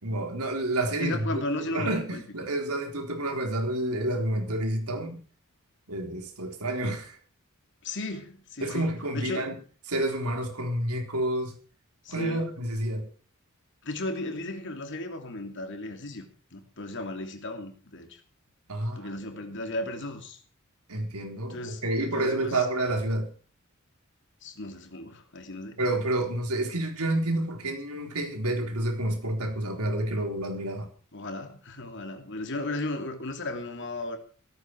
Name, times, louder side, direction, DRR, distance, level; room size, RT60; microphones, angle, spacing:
voice 1, 0.0-5.2 5.9-7.2 8.6-9.6 9.9-11.6 12.1-13.1 18.7-19.5 20.9-23.3 25.8-30.9, right 1 dB, 90° right, 3.9 m, -29 dB
voice 2, 1.0-2.2 7.8-9.5 12.0-12.4 13.8-18.2 18.9-20.4 21.5-22.7 24.4-25.8 31.1-34.2, left 1 dB, 55° left, 3.0 m, -35 dB
16.5 x 14.5 x 4.7 m
head